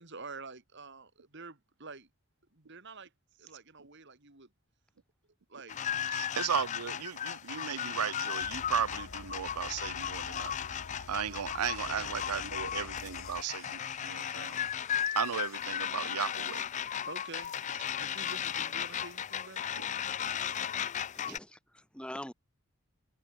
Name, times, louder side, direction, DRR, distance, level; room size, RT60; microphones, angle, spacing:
voice 1, 0.0-2.1 2.5-3.1 3.4-4.5 5.5-5.9 11.9-12.1 12.6-12.7 17.1-17.5 18.0-19.7, right 3 dB, 50° right, 2.3 m, -48 dB
sound 1, 5.7-21.4, left 9 dB, 35° left, 0.4 m, -36 dB
voice 2, 6.1-10.6 11.1-14.6 15.1-16.6 19.8-19.9 21.3-21.4, right 8 dB, 90° right, 0.7 m, -35 dB
sound 2, 8.4-13.4, left 3 dB, 80° left, 1.2 m, -49 dB
sound 3, 11.6-18.0, left 9 dB, 60° left, 4.1 m, -60 dB
voice 3, 21.2-22.3, left 1 dB, 5° left, 3.2 m, -44 dB
head